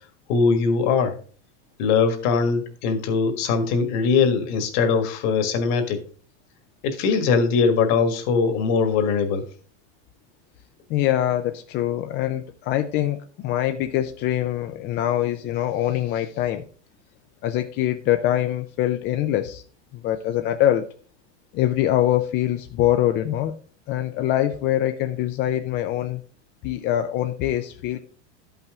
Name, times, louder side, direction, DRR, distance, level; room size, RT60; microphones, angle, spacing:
voice 1, 0.3-1.2 1.8-6.0 6.8-9.4, left 5 dB, 50° left, 7 dB, 1.7 m, -21 dB
voice 2, 10.9-16.6 17.4-19.6 19.9-20.9 21.5-23.6 23.9-26.2 26.6-28.0, left 12 dB, 30° left, 7 dB, 0.4 m, -24 dB
12.0 x 5.6 x 3.6 m, 0.43 s
supercardioid pair, 145°, 35 cm